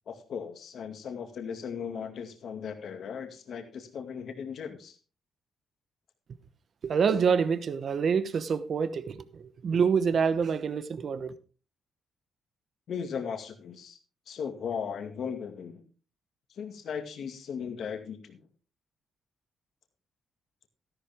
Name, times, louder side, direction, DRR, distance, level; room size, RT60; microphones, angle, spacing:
voice 1, 0.1-5.0 12.9-14.0 14.3-15.8 16.5-18.4, left 7 dB, 65° left, 2.1 m, -37 dB
voice 2, 6.8-11.3, right 6 dB, 55° right, 1.0 m, -27 dB
13.5 x 11.5 x 3.6 m
cardioid pair, 90°, 0 cm